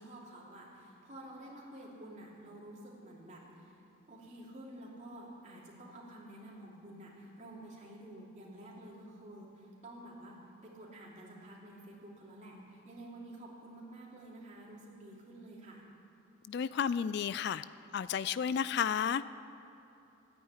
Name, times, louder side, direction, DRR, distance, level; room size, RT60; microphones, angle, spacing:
voice 1, 0.0-3.8 4.1-10.4 10.6-15.9, right 1 dB, 35° right, -4 dB, 2.9 m, -50 dB
voice 2, 16.5-17.6 17.9-19.2, left 7 dB, 55° left, 16 dB, 0.3 m, -32 dB
14.0 x 9.5 x 9.8 m, 3.0 s
head